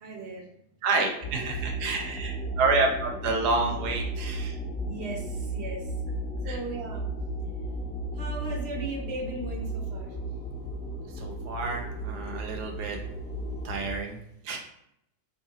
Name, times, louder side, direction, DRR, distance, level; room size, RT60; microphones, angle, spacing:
voice 1, 0.0-0.4 2.7-2.9 4.8-5.2 5.5-5.8 6.4-7.0 8.2-10.1, right 2 dB, 50° right, 0 dB, 0.9 m, -36 dB
voice 2, 0.8-4.5 6.4-6.6 11.2-13.0 13.6-14.2 14.4-14.6, right 3 dB, 80° right, 1 dB, 1.2 m, -29 dB
sound 1, 1.2-14.0, right 1 dB, 45° left, 1.1 m, -34 dB
5.2 x 2.7 x 2.4 m, 0.75 s
omnidirectional pair, 1.7 m